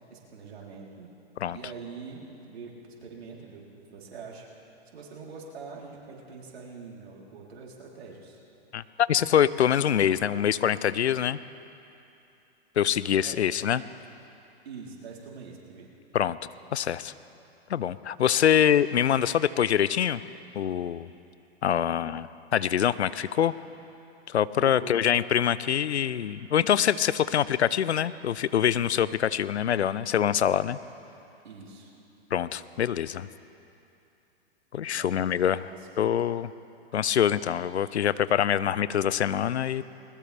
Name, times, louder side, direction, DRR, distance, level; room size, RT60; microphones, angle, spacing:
voice 1, 0.1-1.1 1.5-4.5 4.9-8.4 12.8-12.9 13.2-13.4 14.7-15.9 24.6-25.0 31.4-31.9 34.8-35.9, right 5 dB, 70° right, -3 dB, 3.7 m, -44 dB
voice 2, 9.1-11.4 12.8-13.8 16.1-16.4 16.7-17.1 17.7-20.2 20.5-21.1 21.6-23.5 24.3-30.8 32.3-33.3 34.7-35.6 36.0-36.5 36.9-39.8, left 9 dB, 90° left, 17 dB, 0.6 m, -25 dB
20.5 x 20.5 x 3.4 m, 2.8 s
hypercardioid pair, 115°, 32 cm